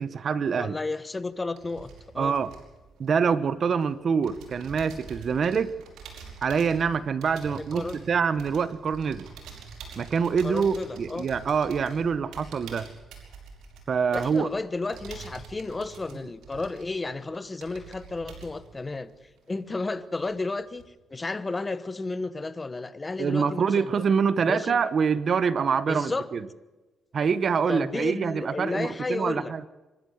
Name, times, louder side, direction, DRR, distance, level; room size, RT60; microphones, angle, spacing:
voice 1, 0.0-0.8 2.2-2.5 3.0-5.7 6.4-9.3 10.0-12.9 13.9-14.5 23.2-26.4 27.1-29.7, right 6 dB, 50° right, 1.0 m, -25 dB
voice 2, 0.6-2.4 7.5-8.0 10.4-11.3 14.1-19.1 19.5-20.8 21.1-24.0 24.4-24.8 25.9-26.3 27.7-29.5, left 3 dB, 25° left, 1.2 m, -32 dB
sound 1, 1.2-3.8 4.2-19.9 20.2-20.8, right 5 dB, 80° right, 5.5 m, -46 dB
25.0 x 13.0 x 8.0 m
cardioid pair, 90°, 0 cm